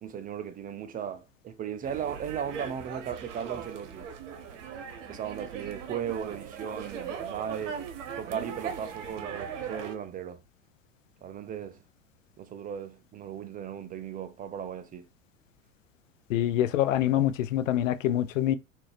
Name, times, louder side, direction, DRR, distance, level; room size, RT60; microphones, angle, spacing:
voice 1, 0.0-4.1 5.1-7.8 8.2-10.4 11.2-11.8 12.4-15.1, right 8 dB, 25° right, 0.4 m, -36 dB
sound 1, 1.8-9.9, right 7 dB, 70° right, 0.9 m, -39 dB
voice 2, 16.3-18.6, left 12 dB, 80° left, 0.5 m, -25 dB
3.8 x 2.6 x 3.4 m
hypercardioid pair, 90°, 38 cm